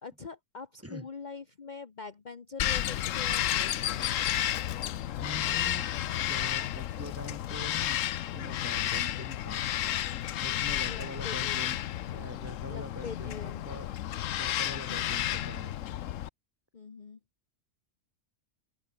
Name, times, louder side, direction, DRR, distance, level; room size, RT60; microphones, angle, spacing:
voice 1, 0.0-4.3 10.9-11.7 12.7-13.6 14.9-15.0 16.7-17.2, left 5 dB, 40° left, 1.2 m, -44 dB
Bird vocalization bird call bird song, 2.6-16.3, left 12 dB, 80° left, 1.1 m, -32 dB
voice 2, 5.2-5.9 6.3-8.0 8.3-9.6 10.4-11.8 12.1-13.4 13.6-13.9 14.4-15.7, equal, 10° right, 2.7 m, -43 dB
open air
omnidirectional pair, 1.3 m